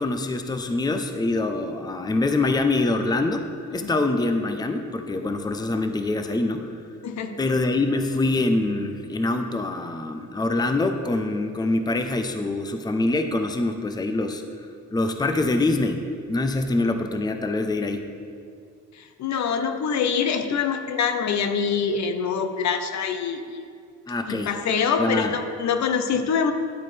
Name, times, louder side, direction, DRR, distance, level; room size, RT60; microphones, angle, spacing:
voice 1, 0.0-6.7 7.4-14.4 14.9-16.0 16.3-18.1 24.1-24.6 25.0-25.3, left 2 dB, 15° left, 7 dB, 0.6 m, -24 dB
voice 2, 18.9-23.6 24.3-26.5, left 6 dB, 65° left, 8 dB, 0.8 m, -25 dB
11.0 x 8.4 x 3.3 m, 2.3 s
cardioid pair, 90°, 30 cm